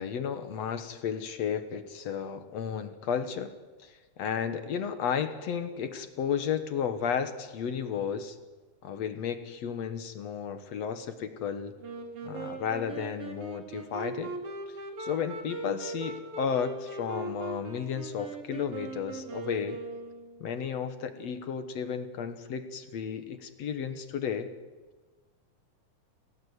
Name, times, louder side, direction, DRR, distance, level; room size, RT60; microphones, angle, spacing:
voice 1, 0.0-3.5 3.8-8.4 8.8-11.8 12.2-14.4 15.0-19.8 20.4-24.5, left 7 dB, 60° left, 9 dB, 2.2 m, -33 dB
Wind instrument woodwind instrument, 11.8-20.6, right 3 dB, 45° right, 3.5 m, -40 dB
29.0 x 17.0 x 8.1 m, 1.3 s
omnidirectional pair, 3.7 m